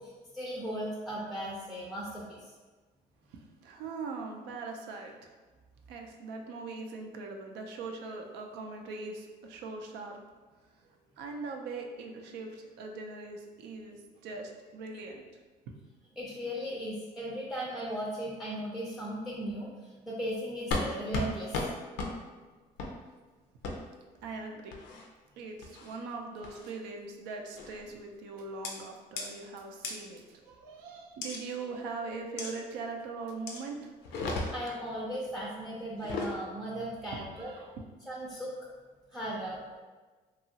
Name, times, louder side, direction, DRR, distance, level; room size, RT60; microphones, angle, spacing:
voice 1, 0.0-2.5 16.2-21.5 34.5-37.5 38.1-38.5 39.1-39.8, equal, ahead, -4 dB, 0.4 m, -37 dB
voice 2, 3.3-5.3 5.9-10.2 10.8-10.9 11.2-15.2 24.2-24.7 25.4-33.9 37.1-37.8 39.8-39.9, right 3 dB, 90° right, 2 dB, 0.4 m, -41 dB
sound 1, 20.7-20.9 21.1-21.3 21.5-21.7 22.0-22.1 22.8-22.9 23.6-23.7 24.7-25.1 25.6-26.0 26.4-26.7 27.6-27.8 28.6-28.7 29.2-29.3 29.8-29.9 31.2-31.4 32.4-32.5 33.5-33.6 34.0-34.8 35.9-36.3, left 3 dB, 90° left, 0.5 m, -34 dB
2.8 x 2.3 x 2.7 m, 1.3 s
cardioid pair, 110°, 17 cm